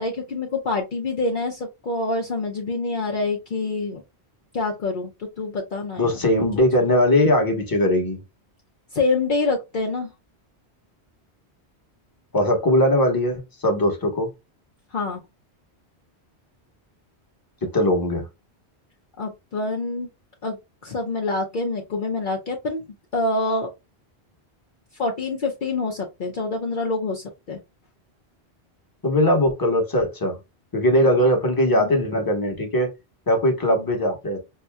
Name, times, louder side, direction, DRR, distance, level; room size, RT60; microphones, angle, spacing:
voice 1, 0.0-4.0 4.5-6.3 8.9-10.1 14.9-15.2 19.2-20.1 20.4-20.6 20.8-22.8 23.1-23.7 25.0-27.6 31.6-31.9, left 3 dB, 55° left, 0.8 m, -26 dB
voice 2, 6.0-8.2 12.3-14.3 17.6-18.3 29.0-30.4 30.7-32.9 33.3-34.4, left 1 dB, 20° left, 1.0 m, -20 dB
5.5 x 2.6 x 2.2 m
omnidirectional pair, 1.1 m